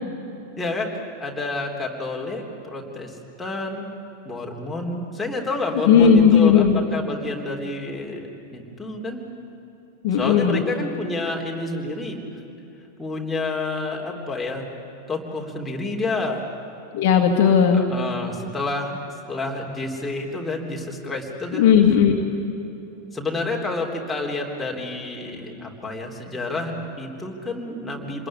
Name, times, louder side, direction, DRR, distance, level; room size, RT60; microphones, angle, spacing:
voice 1, 0.6-0.9 1.2-3.9 4.2-9.2 10.1-12.2 13.0-14.8 15.1-16.4 17.7-19.0 19.2-21.8 23.1-28.3, left 2 dB, 5° left, -1 dB, 3.7 m, -29 dB
voice 2, 5.9-6.8 10.0-10.6 16.9-17.8 21.5-22.1, left 7 dB, 50° left, 3 dB, 2.2 m, -16 dB
27.5 x 20.5 x 9.8 m, 2.8 s
figure-of-eight pair, 90°, 0 cm